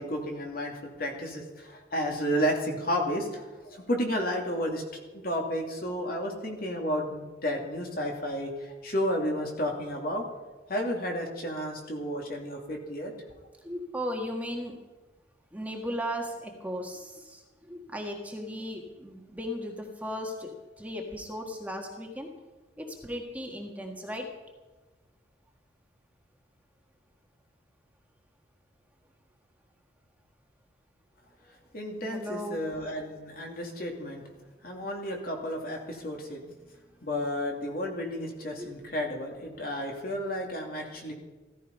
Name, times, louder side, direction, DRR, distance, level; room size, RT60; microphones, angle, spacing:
voice 1, 0.0-4.8 5.1-10.3 10.7-13.1 31.7-34.2 34.6-36.4 37.0-41.1, equal, 50° left, 1 dB, 2.8 m, -32 dB
voice 2, 13.6-14.7 15.5-20.5 20.8-22.3 22.8-24.3 32.0-32.6 38.2-38.3 38.6-38.7, equal, 10° right, 1 dB, 1.6 m, -36 dB
15.5 x 14.0 x 5.4 m, 1.2 s
head